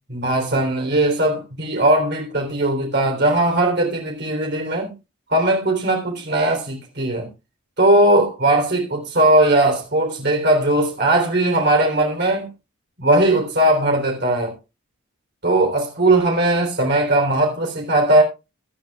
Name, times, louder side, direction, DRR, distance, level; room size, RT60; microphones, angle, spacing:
voice 1, 0.1-4.9 5.3-7.3 7.8-12.5 13.0-14.5 15.4-18.2, right 1 dB, 50° right, 3.7 m, -18 dB
17.5 x 11.0 x 2.4 m
head